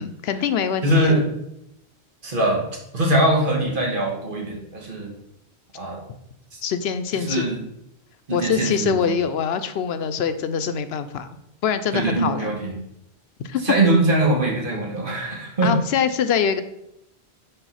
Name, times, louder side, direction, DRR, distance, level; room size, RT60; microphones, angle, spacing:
voice 1, 0.0-1.2 6.6-7.5 8.3-11.3 11.6-12.5 13.4-13.6 15.6-16.6, left 7 dB, 80° left, 10 dB, 0.8 m, -24 dB
voice 2, 0.8-1.3 2.2-2.6 2.9-5.1 5.7-6.0 6.5-6.6 7.2-7.6 8.3-9.2 11.9-12.8 13.6-15.7, right 1 dB, 55° right, -1 dB, 1.7 m, -22 dB
5.7 x 4.2 x 5.6 m, 0.79 s
omnidirectional pair, 1.1 m